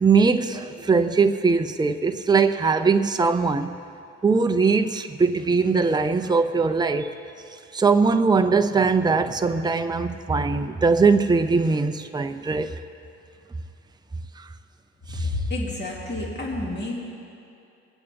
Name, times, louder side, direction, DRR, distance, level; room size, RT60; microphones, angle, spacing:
voice 1, 0.0-3.7 4.2-7.1 7.7-12.7 15.1-15.3, right 4 dB, 15° right, 7 dB, 0.6 m, -21 dB
voice 2, 15.1-17.0, left 2 dB, 35° left, -3 dB, 2.5 m, -29 dB
21.5 x 8.6 x 3.5 m, 2.7 s
cardioid pair, 90°, 30 cm